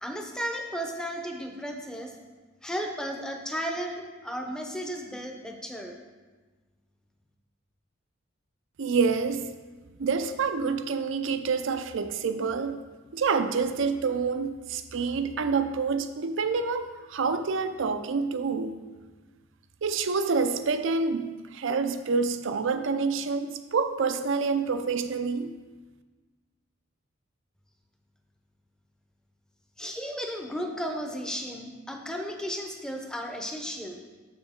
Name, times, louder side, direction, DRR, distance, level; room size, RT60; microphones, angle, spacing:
voice 1, 0.0-2.1 2.6-5.9 29.8-34.0, equal, 5° left, 3 dB, 0.7 m, -34 dB
voice 2, 8.8-9.5 10.0-12.7 13.1-18.7 19.8-25.5, right 5 dB, 65° right, 9 dB, 0.5 m, -27 dB
7.0 x 6.3 x 3.6 m, 1.3 s
head